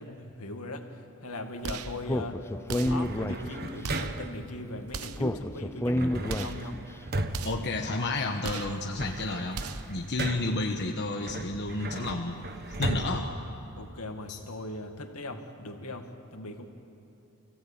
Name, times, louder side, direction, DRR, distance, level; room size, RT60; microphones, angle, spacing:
voice 1, 0.0-6.8 13.8-16.6, left 2 dB, 75° left, 4 dB, 2.2 m, -39 dB
sound 1, 1.6-2.0 2.7-3.1 3.8-4.2 4.9-5.3 6.3-6.6 7.3-7.7 8.4-8.8 9.5-9.9, right 5 dB, 80° right, 1.0 m, -38 dB
Speech, 2.1-3.9 5.2-6.9, left 1 dB, 10° left, 0.6 m, -30 dB
sound 2, 2.8-4.5 5.9-8.4 8.8-10.7 11.2-14.3, right 2 dB, 45° right, 1.2 m, -36 dB
voice 2, 7.4-13.3 14.3-14.4, left 2 dB, 50° left, 1 dB, 1.3 m, -31 dB
29.0 x 16.5 x 8.7 m, 2.9 s
head